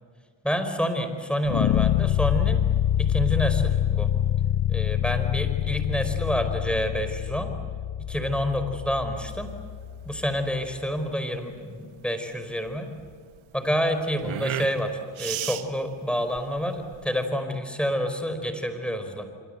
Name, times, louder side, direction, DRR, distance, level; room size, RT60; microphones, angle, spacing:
voice 1, 0.4-2.7 3.0-4.1 4.7-7.5 8.0-9.6 10.0-12.9 13.5-19.3, equal, ahead, 7 dB, 4.9 m, -28 dB
sound 1, 1.5-10.6, left 11 dB, 60° left, 1.0 m, -26 dB
sound 2, 9.2-17.2, right 11 dB, 75° right, 1.5 m, -37 dB
26.5 x 24.0 x 8.1 m, 2.1 s
cardioid pair, 70°, 48 cm